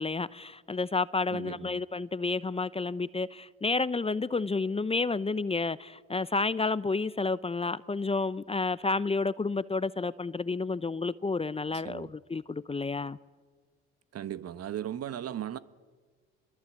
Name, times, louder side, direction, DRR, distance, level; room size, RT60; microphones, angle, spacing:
voice 1, 0.0-13.2, left 3 dB, 20° left, 0.7 m, -30 dB
voice 2, 1.3-1.8 11.8-12.1 14.1-15.6, right 11 dB, 55° right, 1.3 m, -37 dB
28.5 x 22.0 x 8.2 m
supercardioid pair, 65°, 30 cm